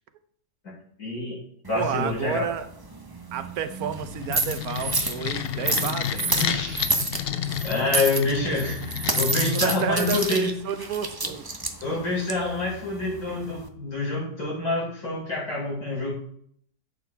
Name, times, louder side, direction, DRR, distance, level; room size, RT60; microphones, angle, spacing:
voice 1, 1.0-1.4 1.7-2.5 4.9-5.1 6.3-6.9 7.1-10.6 11.8-16.1, left 2 dB, 75° left, -6 dB, 5.3 m, -27 dB
sound 1, 1.6-13.7, right 2 dB, 20° right, 0.7 m, -30 dB
voice 2, 1.7-2.7 3.3-6.4 9.2-11.5, right 8 dB, 75° right, 10 dB, 1.3 m, -31 dB
sound 2, 3.9-10.3, left 9 dB, 55° left, 0.6 m, -31 dB
11.5 x 8.4 x 3.4 m, 0.63 s
omnidirectional pair, 1.6 m